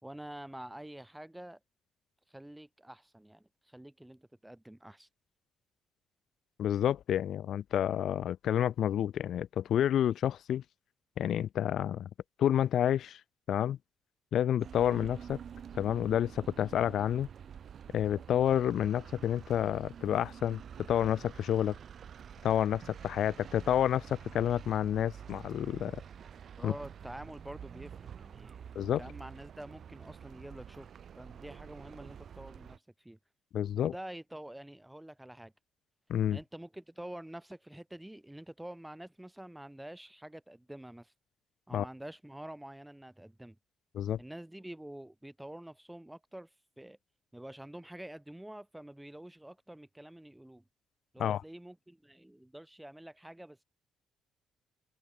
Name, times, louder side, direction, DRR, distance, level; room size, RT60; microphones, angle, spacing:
voice 1, 0.0-1.6 2.3-5.1 26.6-28.6 29.0-30.9 31.2-33.2 33.7-35.5 36.3-41.1 41.7-43.6 44.2-46.5 46.8-47.0 47.3-50.6 51.1-53.6, right 1 dB, 5° right, 3.1 m, -47 dB
voice 2, 6.6-10.6 11.2-12.1 12.4-13.2 13.5-13.8 14.3-15.4 15.7-17.3 17.9-20.6 20.9-21.7 22.4-26.0 26.6-26.7 28.7-29.0 33.5-33.9 36.1-36.4 41.7-41.8 43.9-44.2 51.2-51.4, left 10 dB, 70° left, 0.8 m, -29 dB
sound 1, 14.6-32.8, right 8 dB, 55° right, 0.8 m, -48 dB
open air
cardioid pair, 90°, 0 cm